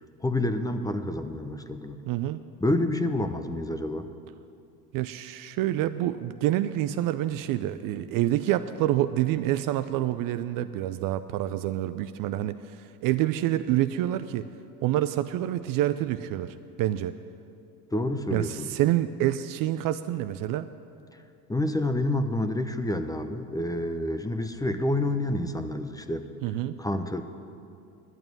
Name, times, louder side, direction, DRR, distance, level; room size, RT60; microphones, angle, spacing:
voice 1, 0.2-2.0 2.6-4.1 17.9-18.7 21.5-26.2 26.8-27.2, left 1 dB, 10° left, 8 dB, 0.7 m, -28 dB
voice 2, 2.1-2.4 4.9-14.4 14.8-17.1 18.3-20.7 26.4-26.8, right 13 dB, 45° right, 12 dB, 0.5 m, -27 dB
11.0 x 8.8 x 9.3 m, 2.5 s
hypercardioid pair, 85°, 48 cm